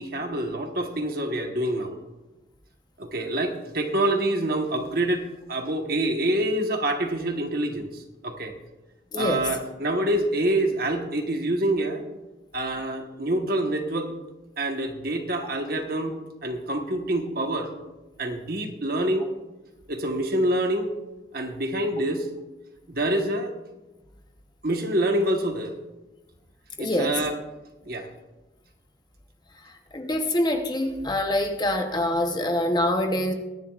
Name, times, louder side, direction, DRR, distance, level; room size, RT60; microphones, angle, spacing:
voice 1, 0.0-2.0 3.0-5.2 5.5-8.5 9.1-12.0 12.5-14.1 14.6-16.1 16.4-17.7 18.2-19.3 19.9-20.9 21.3-22.3 22.9-23.5 24.6-25.8 26.8-27.4 27.8-28.1, right 1 dB, 50° right, 4 dB, 1.2 m, -26 dB
voice 2, 9.1-9.4 26.8-27.2 29.9-33.3, left 1 dB, 20° left, 4 dB, 0.9 m, -25 dB
21.5 x 10.5 x 2.4 m, 1.1 s
head